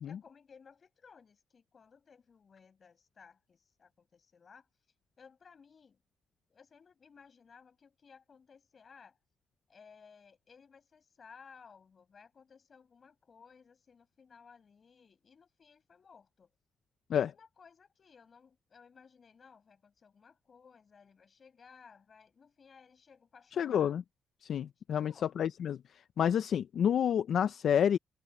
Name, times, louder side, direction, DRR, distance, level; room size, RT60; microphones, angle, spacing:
voice 1, 0.0-4.7 5.2-6.0 6.5-9.2 9.7-16.5 17.1-24.0 24.9-25.3, left 6 dB, 45° left, 6.0 m, -59 dB
voice 2, 23.6-24.0 24.4-25.8 26.2-28.0, left 8 dB, 70° left, 0.5 m, -29 dB
cardioid pair, 115°, 0 cm